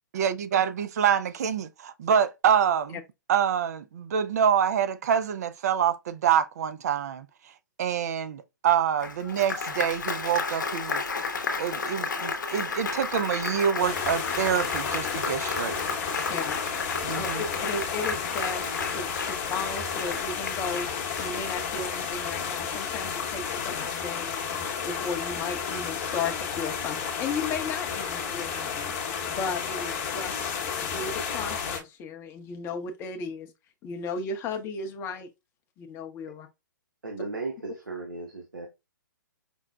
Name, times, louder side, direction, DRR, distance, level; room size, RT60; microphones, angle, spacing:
voice 1, 0.1-3.0 3.3-7.3 7.8-11.0 11.6-15.8 17.0-17.4, right 8 dB, 55° right, 0.4 m, -26 dB
Applause, 9.0-21.7, left 4 dB, 70° left, 0.8 m, -33 dB
sound 1, 13.8-31.8, left 6 dB, 40° left, 0.9 m, -32 dB
voice 2, 17.1-18.7 18.9-20.9 21.2-24.4 24.8-28.9 29.3-30.3 30.8-33.5 33.8-35.3 35.8-36.5, left 4 dB, 20° left, 0.6 m, -35 dB
voice 3, 37.0-38.7, right 3 dB, 85° right, 0.9 m, -36 dB
5.2 x 2.1 x 2.3 m
figure-of-eight pair, 125°, 11 cm